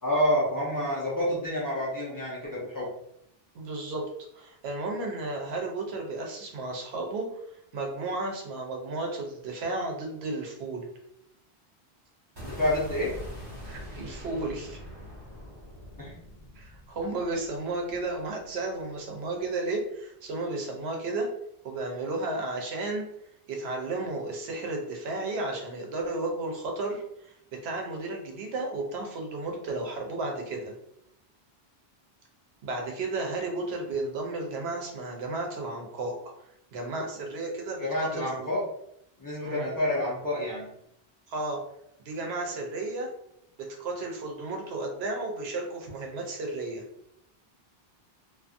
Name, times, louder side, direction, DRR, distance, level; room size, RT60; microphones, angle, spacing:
voice 1, 0.0-2.9 12.4-13.2 16.0-16.1 37.8-38.6 39.2-40.7, left 1 dB, 20° left, -7 dB, 0.7 m, -28 dB
voice 2, 3.5-4.0 4.3-7.3 7.7-10.9 13.6-14.8 16.6-21.3 21.6-23.0 23.5-30.7 32.6-36.2 36.7-38.5 39.4-39.7 41.3-41.6 42.0-43.1 43.6-46.8, right 2 dB, 90° right, 1 dB, 0.9 m, -33 dB
sound 1, 12.4-18.4, equal, 40° right, 1.5 m, -43 dB
2.5 x 2.5 x 2.5 m, 0.76 s
omnidirectional pair, 1.0 m